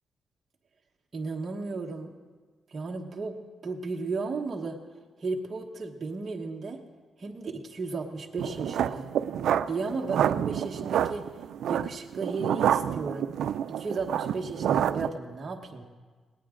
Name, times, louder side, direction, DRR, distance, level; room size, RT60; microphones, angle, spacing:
voice 1, 1.1-2.1 2.7-4.8 5.2-6.8 7.2-9.1 9.7-11.2 11.7-13.3 13.8-15.8, right 4 dB, 30° right, 0 dB, 1.2 m, -34 dB
sound 1, 8.4-15.1, right 9 dB, 90° right, 0.4 m, -28 dB
19.0 x 18.5 x 3.7 m, 1.4 s
wide cardioid pair, 155°, 0 cm